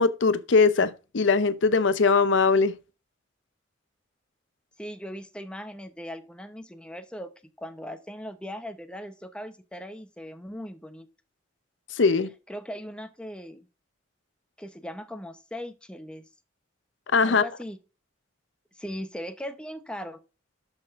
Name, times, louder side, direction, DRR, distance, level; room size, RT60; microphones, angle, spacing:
voice 1, 0.0-2.8 12.0-12.3 17.1-17.4, left 4 dB, 70° left, 0.7 m, -21 dB
voice 2, 4.8-7.3 7.6-11.1 12.5-13.7 14.6-16.3 17.2-17.8 18.8-20.2, equal, 5° left, 0.8 m, -39 dB
12.0 x 5.9 x 2.5 m
head